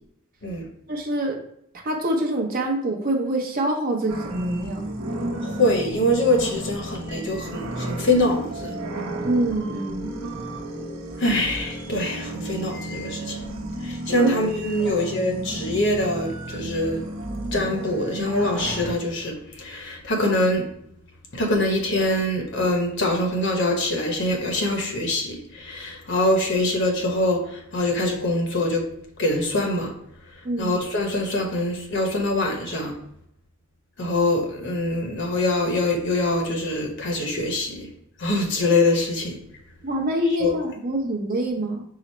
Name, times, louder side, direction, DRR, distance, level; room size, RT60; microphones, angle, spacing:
voice 1, 0.9-1.4 1.8-4.9 9.2-10.1 14.2-14.3 14.9-15.0 30.4-30.7 39.8-41.8, right 1 dB, 45° right, 1 dB, 0.7 m, -25 dB
sound 1, 4.1-18.9, right 1 dB, 80° right, 0.8 m, -33 dB
voice 2, 5.4-8.8 11.2-13.4 13.8-17.1 17.5-20.7 21.3-28.8 29.2-29.9 30.3-33.0 34.0-37.9 38.2-39.4 40.2-40.6, left 1 dB, 60° left, 1 dB, 0.9 m, -24 dB
4.8 x 2.0 x 4.2 m, 0.73 s
head